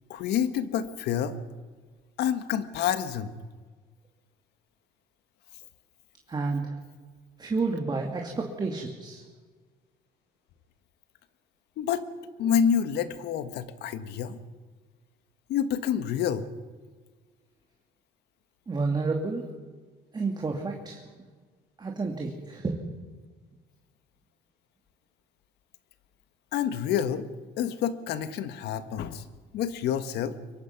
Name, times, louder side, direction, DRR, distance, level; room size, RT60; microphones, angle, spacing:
voice 1, 0.1-1.4 2.2-3.3 11.8-12.0 12.4-14.4 15.5-16.5 26.5-27.3 27.6-29.2 29.5-30.4, left 8 dB, 80° left, 11 dB, 1.5 m, -28 dB
voice 2, 6.3-6.8 7.4-9.2 18.7-19.5 20.1-21.0 21.8-22.8, right 3 dB, 25° right, 1 dB, 2.6 m, -30 dB
24.5 x 22.5 x 6.0 m, 1.4 s
cardioid pair, 110°, 17 cm